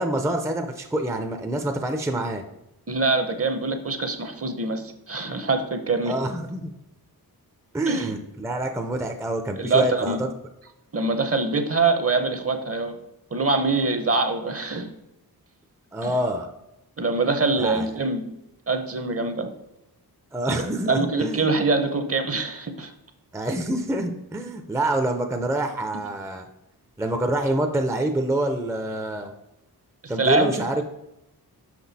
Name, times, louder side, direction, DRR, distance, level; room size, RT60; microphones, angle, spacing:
voice 1, 0.0-2.4 6.0-6.7 7.7-10.3 15.9-16.5 17.6-17.9 20.3-21.5 23.3-26.5 27.0-29.3 30.1-30.8, right 1 dB, 5° right, 5 dB, 0.5 m, -26 dB
voice 2, 2.9-6.1 7.9-8.1 9.6-10.2 10.9-12.9 13.3-14.9 16.0-16.1 17.0-18.2 18.7-19.5 20.5-20.6 20.9-22.9 30.0-30.8, right 3 dB, 35° right, 8 dB, 0.8 m, -24 dB
6.1 x 5.5 x 4.1 m, 0.88 s
wide cardioid pair, 100°, 39 cm